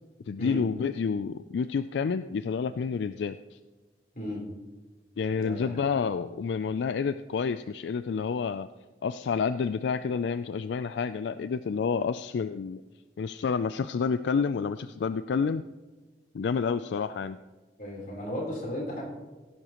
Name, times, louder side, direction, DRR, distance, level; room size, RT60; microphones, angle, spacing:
voice 1, 0.3-3.6 5.2-8.7 9.0-12.8 13.2-15.6 16.3-17.4, left 5 dB, 80° left, 12 dB, 0.3 m, -29 dB
voice 2, 4.1-4.5 5.4-5.7 17.8-19.0, equal, 50° left, -2 dB, 3.7 m, -34 dB
17.0 x 11.0 x 3.0 m, 1.3 s
head